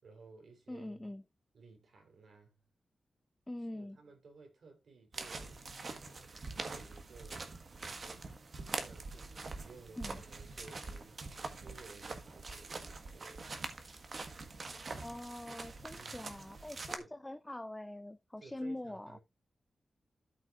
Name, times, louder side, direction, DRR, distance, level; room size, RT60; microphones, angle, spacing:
voice 1, 0.0-1.1 1.5-2.6 3.7-5.7 5.9-8.4 8.7-13.5 15.9-16.3 17.0-17.1 18.4-19.2, right 4 dB, 60° right, 3.9 m, -57 dB
voice 2, 0.7-1.2 3.5-4.0 10.0-10.2 15.0-19.2, left 1 dB, 10° left, 0.4 m, -44 dB
sound 1, 5.1-17.0, right 3 dB, 40° right, 1.5 m, -44 dB
13.0 x 6.2 x 2.5 m
wide cardioid pair, 180°, 0 cm